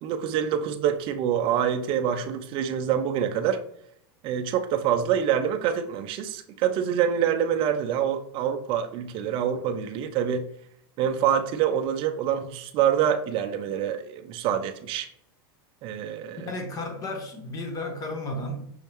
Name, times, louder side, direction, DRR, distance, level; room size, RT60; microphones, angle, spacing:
voice 1, 0.0-3.6 4.2-10.5 11.0-15.1 15.8-16.5, right 9 dB, 40° right, 0.5 m, -26 dB
voice 2, 16.4-18.6, left 1 dB, 30° left, 1.0 m, -33 dB
5.6 x 3.2 x 3.0 m
supercardioid pair, 125°, 13 cm